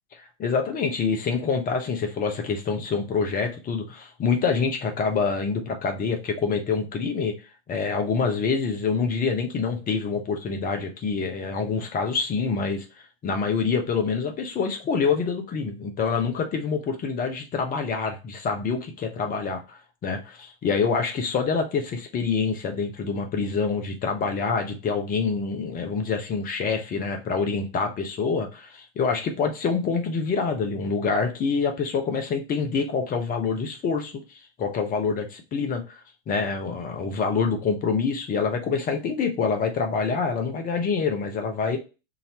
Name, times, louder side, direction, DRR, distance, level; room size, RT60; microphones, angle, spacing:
voice 1, 0.1-7.3 7.7-12.8 13.2-34.2 34.6-36.0 36.3-41.8, left 5 dB, 25° left, 4 dB, 0.9 m, -26 dB
3.9 x 2.7 x 2.8 m, 0.29 s
figure-of-eight pair, 95°, 34 cm